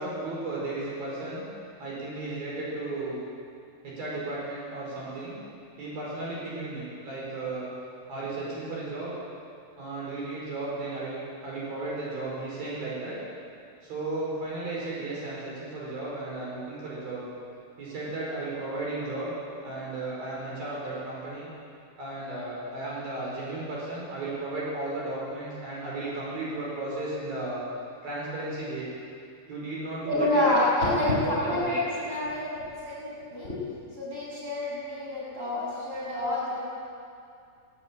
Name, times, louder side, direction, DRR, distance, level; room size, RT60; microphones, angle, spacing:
voice 1, 0.0-1.5 1.8-3.2 3.8-5.4 5.8-7.7 8.1-9.1 9.8-13.2 13.8-17.2 17.8-19.4 19.6-21.5 22.0-27.6 28.0-28.9 29.5-30.4 31.0-31.7, right 2 dB, 75° right, -6 dB, 7.1 m, -34 dB
voice 2, 30.1-33.6 34.0-36.6, left 1 dB, 10° right, -7 dB, 6.3 m, -28 dB
18.0 x 17.5 x 8.9 m, 2.4 s
omnidirectional pair, 4.2 m